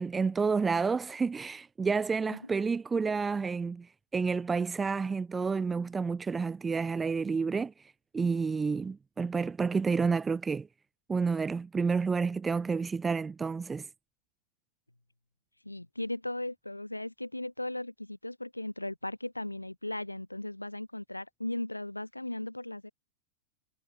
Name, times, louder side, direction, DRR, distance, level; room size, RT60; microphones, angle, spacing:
voice 1, 0.0-10.7 11.1-13.9, right 5 dB, 15° right, 1.1 m, -30 dB
voice 2, 15.6-22.9, left 1 dB, 85° left, 2.4 m, -37 dB
figure-of-eight pair, 90°, 0 cm